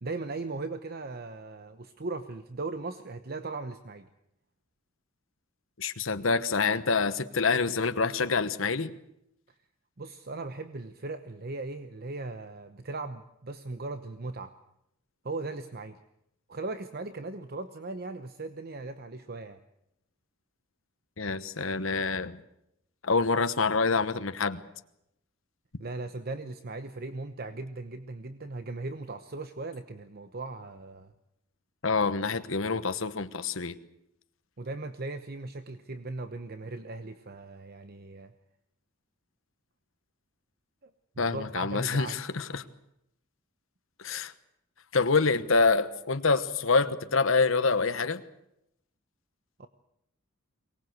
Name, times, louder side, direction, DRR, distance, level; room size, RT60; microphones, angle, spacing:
voice 1, 0.0-4.1 10.0-14.5 15.2-16.0 16.5-19.6 25.8-31.1 34.6-38.3 40.8-40.9 41.2-42.2 49.6-49.7, right 3 dB, 50° right, 9 dB, 0.9 m, -38 dB
voice 2, 5.8-8.9 21.2-22.4 23.0-24.6 31.8-33.8 41.2-42.6 44.0-44.3 44.9-48.2, left 4 dB, 75° left, 11 dB, 1.1 m, -26 dB
23.5 x 19.5 x 7.9 m, 0.82 s
head